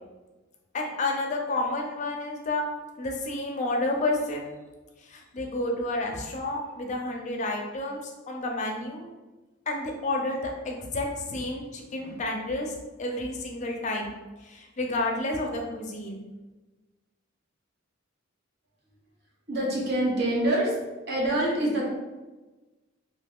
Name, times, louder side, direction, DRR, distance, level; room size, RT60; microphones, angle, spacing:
voice 1, 0.7-2.7 3.0-4.5 5.1-9.1 9.7-12.7 13.0-14.1 14.4-16.2, left 2 dB, 35° left, 1 dB, 0.5 m, -30 dB
voice 2, 19.5-20.7 21.1-21.9, right 1 dB, 55° right, -4 dB, 0.9 m, -25 dB
2.6 x 2.3 x 3.5 m, 1.2 s
head